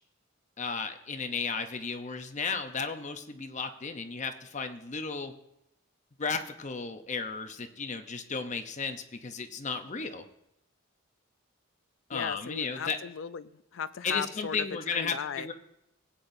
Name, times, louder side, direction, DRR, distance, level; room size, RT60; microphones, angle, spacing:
voice 1, 0.6-5.3 6.2-10.2 12.1-13.0 14.0-15.5, left 5 dB, 35° left, 7 dB, 0.7 m, -34 dB
voice 2, 12.1-15.5, left 7 dB, 65° left, 15 dB, 0.4 m, -37 dB
17.5 x 8.8 x 2.7 m, 0.84 s
head